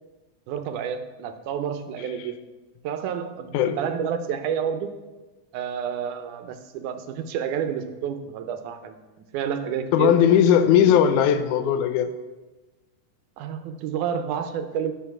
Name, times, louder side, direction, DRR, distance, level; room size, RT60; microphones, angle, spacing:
voice 1, 0.5-2.4 2.8-5.0 5.5-9.0 9.3-10.2 13.4-14.9, right 8 dB, 90° right, 8 dB, 2.2 m, -29 dB
voice 2, 9.9-12.1, left 9 dB, 90° left, 10 dB, 2.1 m, -18 dB
10.0 x 5.0 x 5.9 m, 1.2 s
omnidirectional pair, 3.4 m